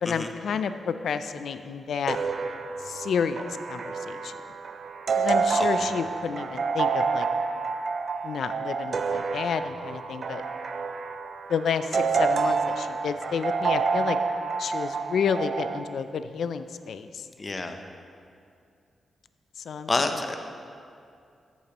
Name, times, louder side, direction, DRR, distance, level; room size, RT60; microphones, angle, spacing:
voice 1, 0.0-2.2 2.9-4.3 5.2-7.3 8.2-10.4 11.5-14.2 14.6-17.1 19.7-19.9, left 6 dB, 75° left, 11 dB, 0.4 m, -30 dB
sound 1, 2.1-15.8, right 5 dB, 50° right, 0.4 m, -28 dB
voice 2, 5.6-5.9 17.4-17.8 19.9-20.3, left 3 dB, 30° left, 6 dB, 0.7 m, -28 dB
14.0 x 8.3 x 3.0 m, 2.4 s
cardioid pair, 105°, 0 cm